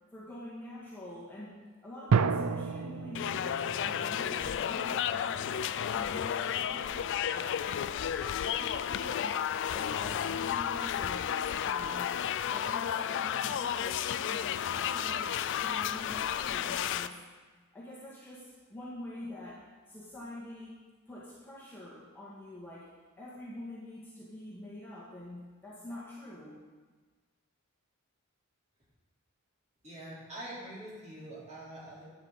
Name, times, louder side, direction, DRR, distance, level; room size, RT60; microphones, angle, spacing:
voice 1, 0.1-1.6 1.8-7.6 8.2-11.3 11.6-12.2 12.5-17.2 17.7-22.9 23.1-26.6, left 1 dB, 10° left, -8 dB, 1.7 m, -46 dB
sound 1, 2.1-5.6, right 5 dB, 75° right, 0.4 m, -31 dB
sound 2, 3.1-17.1, left 9 dB, 55° left, 0.4 m, -32 dB
voice 2, 29.8-32.0, right 1 dB, 30° right, -8 dB, 3.8 m, -44 dB
11.5 x 8.6 x 4.1 m, 1.4 s
head